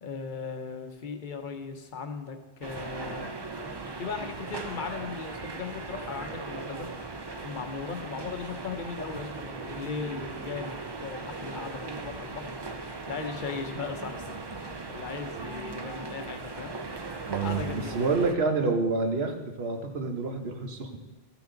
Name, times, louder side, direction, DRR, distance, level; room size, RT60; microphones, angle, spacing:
voice 1, 0.0-3.3 4.0-6.9 7.4-12.5 13.1-16.7 17.4-18.1, left 5 dB, 55° left, 5 dB, 1.0 m, -38 dB
sound 1, 2.6-18.4, right 3 dB, 30° right, 0.6 m, -38 dB
voice 2, 17.3-21.0, right 4 dB, 75° right, 4 dB, 1.3 m, -28 dB
14.5 x 6.0 x 3.9 m, 1.2 s
omnidirectional pair, 1.1 m